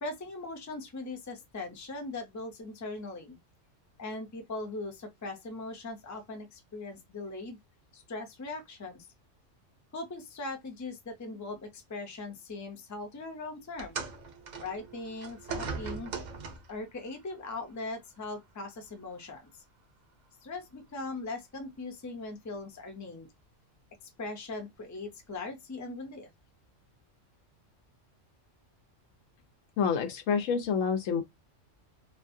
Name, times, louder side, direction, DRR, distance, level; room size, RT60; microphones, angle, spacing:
voice 1, 0.0-3.4 4.0-7.6 7.9-9.1 9.9-14.0 14.6-16.1 16.7-19.5 20.4-23.3 24.2-26.3, left 3 dB, 25° left, 0.4 m, -40 dB
sound 1, 13.8-16.8 17.8-18.0 18.8-18.9, right 5 dB, 60° right, 0.5 m, -39 dB
voice 2, 29.8-31.2, left 6 dB, 90° left, 1.0 m, -28 dB
2.6 x 2.4 x 2.6 m
omnidirectional pair, 1.3 m